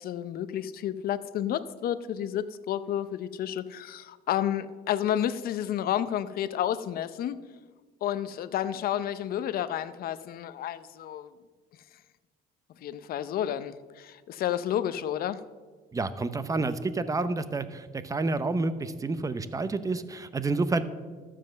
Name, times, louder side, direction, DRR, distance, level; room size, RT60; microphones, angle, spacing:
voice 1, 0.0-7.4 8.0-11.3 12.8-15.4, left 10 dB, 60° left, 13 dB, 0.7 m, -31 dB
voice 2, 15.9-20.8, right 3 dB, 20° right, 12 dB, 0.8 m, -29 dB
13.0 x 7.5 x 6.4 m, 1.4 s
cardioid pair, 110°, 17 cm